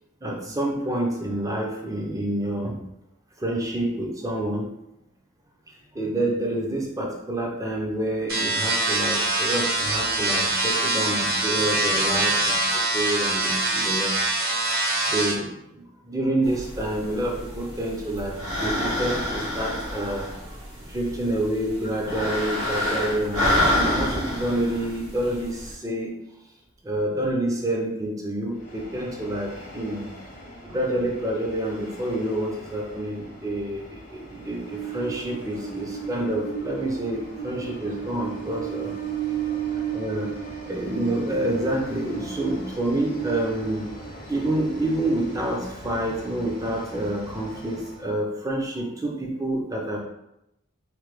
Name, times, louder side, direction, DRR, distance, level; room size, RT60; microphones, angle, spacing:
voice 1, 0.2-2.8 3.4-4.7 5.9-14.2 15.0-26.1 26.8-30.1 30.6-39.0 39.9-40.3 40.7-43.9 44.3-50.0, right 1 dB, 15° right, -1 dB, 0.5 m, -28 dB
sound 1, 8.3-15.3, right 2 dB, 45° right, 0.8 m, -24 dB
sound 2, 16.4-25.7, left 1 dB, 75° right, 1.1 m, -28 dB
Train, 28.6-48.0, right 6 dB, 40° left, 0.6 m, -36 dB
3.1 x 2.1 x 3.1 m, 0.84 s
head